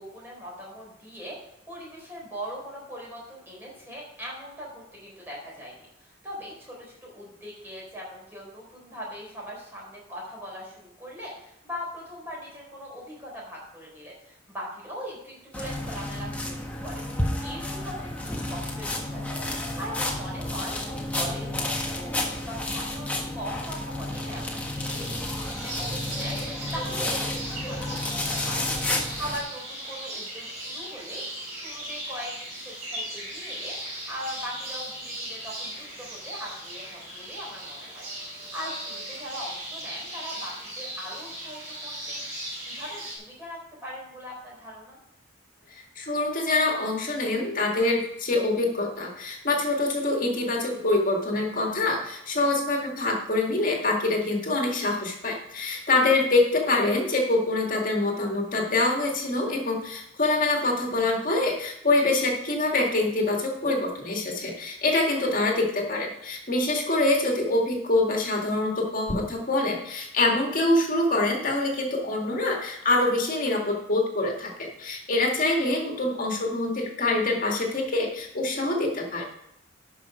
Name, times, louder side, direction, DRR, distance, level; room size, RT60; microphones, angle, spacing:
voice 1, 0.0-1.4 1.7-17.0 17.4-22.1 22.4-31.2 31.5-33.8 34.1-38.1 38.4-42.2 42.6-45.0 65.4-65.6, equal, 10° right, -4 dB, 4.1 m, -40 dB
sound 1, 15.5-29.4, left 1 dB, 5° left, 1.3 m, -31 dB
sound 2, 24.8-43.2, right 1 dB, 40° right, 4.1 m, -37 dB
voice 2, 45.7-79.2, left 2 dB, 45° left, 0 dB, 2.1 m, -25 dB
12.0 x 5.6 x 5.0 m, 0.81 s
head